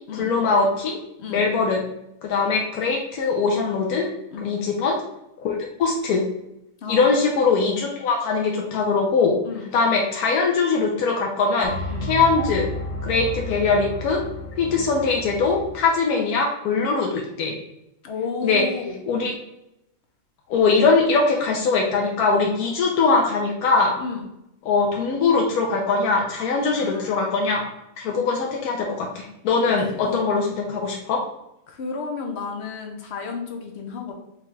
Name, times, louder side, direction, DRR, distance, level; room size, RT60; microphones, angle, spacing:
voice 1, 0.1-1.0 1.3-1.8 2.2-4.1 4.4-5.0 5.4-6.2 6.9-9.3 9.7-11.7 12.0-12.6 13.0-14.2 14.6-17.5 18.4-18.6 19.1-19.3 20.5-23.9 24.6-27.6 28.0-31.2, left 4 dB, 90° left, -1 dB, 1.1 m, -21 dB
voice 2, 6.8-7.2 9.4-9.7 11.9-12.1 14.7-14.8 18.0-19.0 24.0-24.3 26.7-27.3 30.0-30.4 31.7-34.1, left 4 dB, 60° left, 3 dB, 0.8 m, -32 dB
sound 1, 11.6-15.8, left 1 dB, 20° right, 0.4 m, -32 dB
5.1 x 2.3 x 3.2 m, 0.85 s
omnidirectional pair, 1.6 m